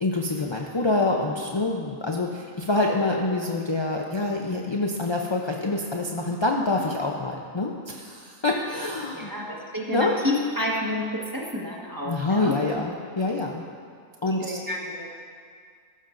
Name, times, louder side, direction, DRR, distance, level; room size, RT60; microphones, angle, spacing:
voice 1, 0.0-9.3 9.9-10.2 12.1-13.7 14.2-14.6, left 2 dB, 35° left, 0 dB, 0.4 m, -26 dB
voice 2, 9.1-12.6 14.3-15.1, left 1 dB, 15° right, -3 dB, 1.4 m, -29 dB
15.0 x 12.5 x 2.6 m, 2.1 s
omnidirectional pair, 1.5 m